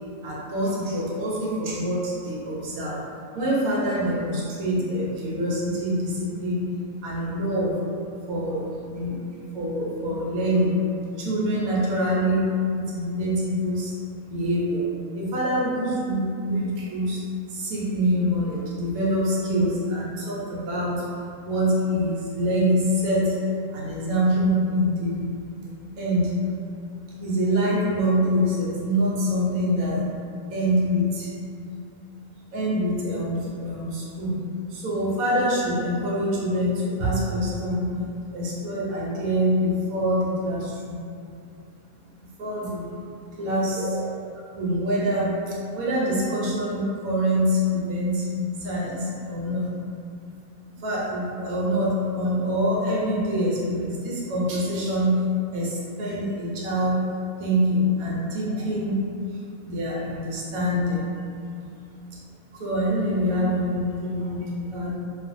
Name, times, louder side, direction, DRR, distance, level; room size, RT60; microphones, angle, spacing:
voice 1, 0.2-3.0 3.3-6.7 7.0-7.8 8.3-9.3 9.5-10.8 11.1-13.9 14.3-14.8 15.1-17.2 17.5-21.0 21.4-23.4 23.7-25.2 25.9-26.3 27.2-30.1 30.5-31.3 32.5-34.4 34.7-38.0 38.3-41.0 42.4-42.9 43.4-44.1 44.5-48.3 48.6-49.7 50.8-55.2 55.5-57.0 57.4-59.0 59.6-61.1 62.5-65.0, equal, 75° right, -6 dB, 1.0 m, -25 dB
2.5 x 2.4 x 2.5 m, 2.4 s
omnidirectional pair, 1.6 m